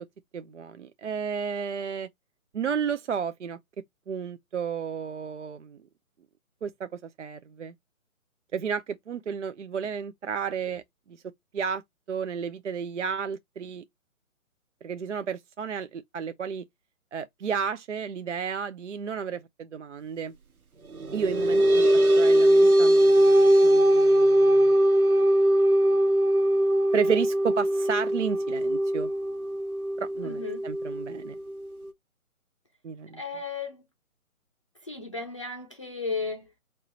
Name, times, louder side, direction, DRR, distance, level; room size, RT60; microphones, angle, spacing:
voice 1, 0.3-2.1 2.5-3.6 4.1-5.8 6.6-7.7 8.5-10.8 11.1-11.2 11.5-11.8 12.1-13.8 14.8-16.6 17.1-20.3 21.1-24.7 26.9-29.1 30.0-31.4 32.8-33.2, right 6 dB, 60° right, 0.5 m, -32 dB
sound 1, 20.9-31.9, right 1 dB, 85° right, 0.9 m, -21 dB
voice 2, 30.2-30.7 33.1-33.8 34.8-36.5, left 4 dB, 25° left, 0.5 m, -34 dB
4.5 x 2.9 x 3.0 m
figure-of-eight pair, 140°, 42 cm